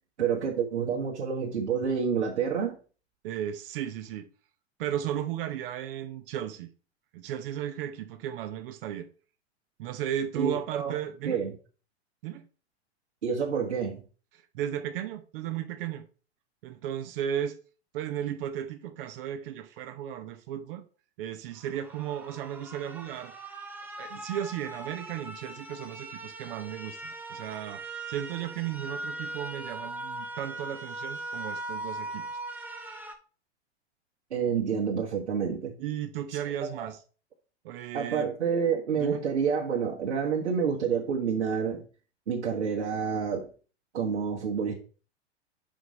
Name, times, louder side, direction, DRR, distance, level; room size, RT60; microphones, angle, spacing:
voice 1, 0.2-2.8 10.3-10.9 11.2-11.6 13.2-14.0 34.3-35.7 36.8-36.9 37.9-41.8 42.3-43.5 43.9-44.7, right 6 dB, 80° right, 1.4 m, -28 dB
voice 2, 3.2-4.3 4.8-6.7 7.1-9.1 9.8-11.4 12.2-12.5 14.5-16.1 16.6-17.6 17.9-20.8 21.2-23.3 24.0-32.4 35.8-37.0 37.6-38.3 39.0-39.2, right 10 dB, 55° right, 0.8 m, -35 dB
sound 1, 21.6-33.1, right 2 dB, 5° right, 0.9 m, -40 dB
5.1 x 4.7 x 5.2 m
hypercardioid pair, 105°, 34 cm